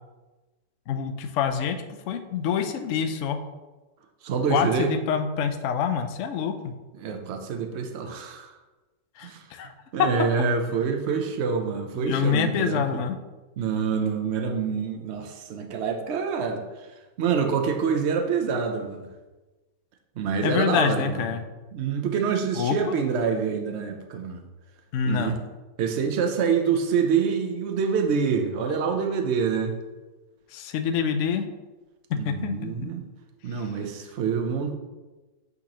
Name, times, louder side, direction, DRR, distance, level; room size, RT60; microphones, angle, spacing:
voice 1, 0.9-1.8 2.1-3.4 4.5-6.7 9.2-9.7 12.0-13.2 20.4-21.4 22.6-23.0 24.9-25.4 30.5-31.5 32.1-32.9, left 7 dB, 85° left, 7 dB, 0.6 m, -26 dB
voice 2, 4.2-4.9 6.9-8.5 9.2-9.4 9.9-13.0 13.6-16.9 17.2-19.1 20.2-21.3 21.7-24.4 25.0-25.4 25.8-29.7 32.1-33.0 33.4-34.7, right 6 dB, 75° right, 4 dB, 0.6 m, -26 dB
8.5 x 4.0 x 2.9 m, 1.2 s
omnidirectional pair, 1.9 m